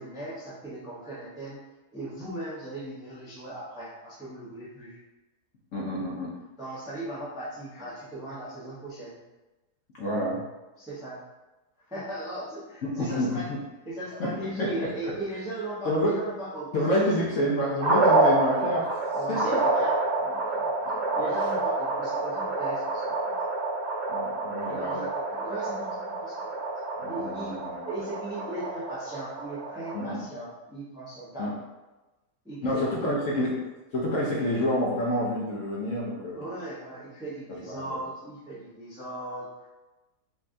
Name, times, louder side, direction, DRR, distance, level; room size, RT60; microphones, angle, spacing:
voice 1, 0.0-1.6 1.9-5.0 6.6-9.2 10.8-11.2 11.8-13.5 13.8-17.1 19.1-20.7 21.1-23.3 24.7-26.7 27.1-31.6 32.4-33.1 36.3-39.7, right 1 dB, 5° right, -8 dB, 0.6 m, -38 dB
voice 2, 5.7-6.3 9.9-10.4 12.8-13.4 14.2-14.3 14.6-15.1 15.8-16.2 16.7-19.6 24.1-25.0 27.0-27.8 29.9-30.2 31.4-31.5 32.6-33.6 33.9-36.4 37.7-38.0, equal, 60° left, -4 dB, 0.9 m, -28 dB
sound 1, 17.8-30.1, right 2 dB, 90° right, 1.6 m, -28 dB
5.3 x 2.4 x 2.6 m, 1.1 s
omnidirectional pair, 1.7 m